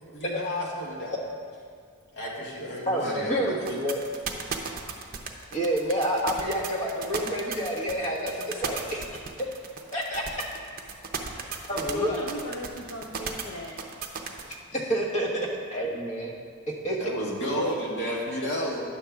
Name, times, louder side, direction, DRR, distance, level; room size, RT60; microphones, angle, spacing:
voice 1, 0.1-1.2 2.1-3.6 17.0-18.8, equal, 55° left, -4 dB, 1.7 m, -31 dB
voice 2, 2.9-4.0 5.5-9.5 9.9-10.4 11.6-12.3 14.7-16.3 16.8-17.1, right 1 dB, 35° left, -2 dB, 1.2 m, -29 dB
sound 1, 3.6-14.5, right 6 dB, 45° right, 0.7 m, -34 dB
voice 3, 11.3-13.8, left 1 dB, 70° left, 0 dB, 0.7 m, -38 dB
9.6 x 3.7 x 7.0 m, 2.1 s
head